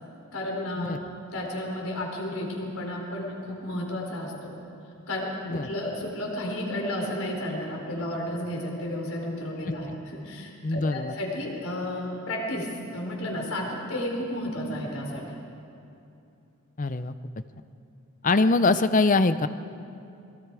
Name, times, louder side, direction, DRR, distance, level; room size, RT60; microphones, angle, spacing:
voice 1, 0.3-1.0 1.3-4.5 5.1-15.4, left 1 dB, 70° left, -1 dB, 4.5 m, -32 dB
voice 2, 10.6-11.2 16.8-17.1 18.2-19.5, left 3 dB, 35° left, 12 dB, 0.6 m, -23 dB
26.5 x 22.0 x 4.8 m, 2.7 s
head